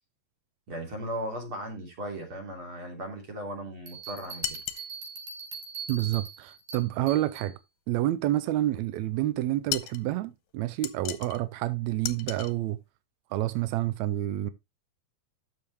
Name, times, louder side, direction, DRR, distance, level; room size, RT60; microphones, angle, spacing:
voice 1, 0.7-4.6, equal, 40° right, 3.7 m, -37 dB
Bell, 3.9-7.5, right 5 dB, 55° right, 3.2 m, -41 dB
sound 1, 4.4-4.9 9.7-10.0 10.8-11.4 12.0-12.5, left 13 dB, 75° left, 2.0 m, -34 dB
voice 2, 5.9-7.6 7.9-12.8 13.3-14.5, right 14 dB, 85° right, 1.6 m, -28 dB
12.5 x 7.0 x 3.0 m
omnidirectional pair, 3.9 m